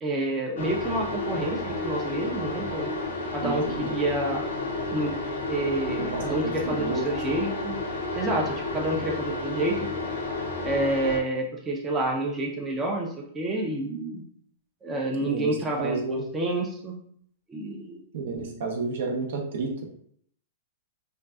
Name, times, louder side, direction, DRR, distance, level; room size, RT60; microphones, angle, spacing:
voice 1, 0.0-2.9 3.3-4.4 4.9-5.2 5.4-7.8 8.1-9.8 10.6-14.2 14.8-16.9 17.5-18.0, right 2 dB, 15° right, 0 dB, 0.4 m, -29 dB
sound 1, 0.6-11.2, left 2 dB, 80° left, 0.5 m, -31 dB
voice 2, 3.4-3.9 6.0-6.2 6.6-7.0 15.2-16.3 18.1-19.8, right 3 dB, 70° right, 1 dB, 0.6 m, -31 dB
2.5 x 2.3 x 2.2 m, 0.63 s
hypercardioid pair, 135°, 0 cm